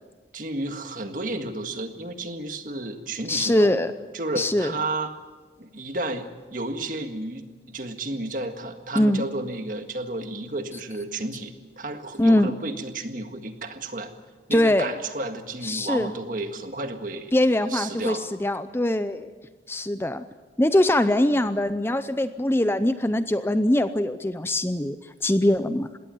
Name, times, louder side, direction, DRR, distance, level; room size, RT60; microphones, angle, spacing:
voice 1, 0.3-3.9 4.1-5.2 5.6-14.1 14.5-17.3 17.7-18.3, right 2 dB, 50° right, 7 dB, 1.8 m, -32 dB
voice 2, 3.3-3.9 4.4-4.7 9.0-9.2 12.2-12.5 14.5-14.9 15.6-16.1 17.3-19.3 19.7-20.2 20.6-25.0 25.2-25.9, left 1 dB, 15° left, 11 dB, 0.6 m, -22 dB
21.0 x 17.5 x 9.3 m, 1.3 s
head